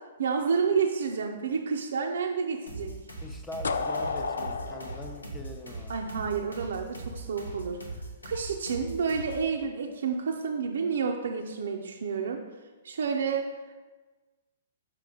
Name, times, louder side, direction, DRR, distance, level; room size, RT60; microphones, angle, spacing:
voice 1, 0.2-2.9 5.9-7.8 8.2-12.4 12.8-13.5, right 5 dB, 65° right, 2 dB, 0.5 m, -29 dB
sound 1, 2.7-9.5, right 2 dB, 90° left, 1.2 m, -41 dB
voice 2, 3.2-5.9, left 1 dB, 10° left, 4 dB, 0.7 m, -42 dB
sound 2, 3.6-6.5, left 4 dB, 75° left, 0.3 m, -33 dB
6.0 x 4.5 x 3.6 m, 1.3 s
figure-of-eight pair, 120°, 0 cm